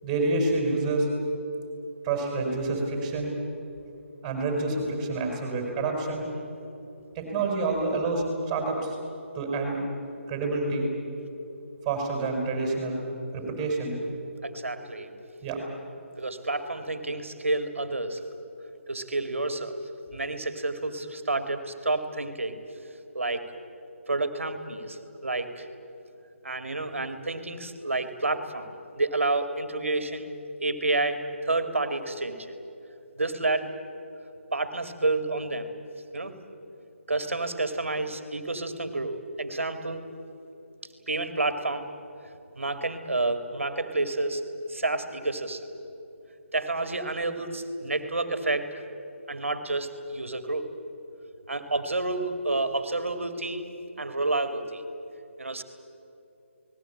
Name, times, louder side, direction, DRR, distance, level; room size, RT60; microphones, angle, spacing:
voice 1, 0.0-1.1 2.0-3.3 4.2-6.3 7.1-9.0 9.3-9.8 10.3-10.9 11.8-13.0 13.3-14.0 15.4-15.6, right 3 dB, 15° right, 2 dB, 5.9 m, -28 dB
voice 2, 14.4-15.1 16.2-18.2 18.9-19.8 20.1-22.6 23.1-23.4 24.1-25.7 26.4-30.3 30.6-32.4 33.2-33.7 34.5-35.7 36.1-36.3 37.1-40.1 41.1-41.9 42.6-44.4 44.7-45.7 46.5-48.8 49.3-50.7 51.5-53.6 54.0-54.8 55.4-55.6, right 2 dB, 70° right, 9 dB, 2.3 m, -29 dB
29.5 x 20.0 x 8.7 m, 2.8 s
figure-of-eight pair, 150°, 7 cm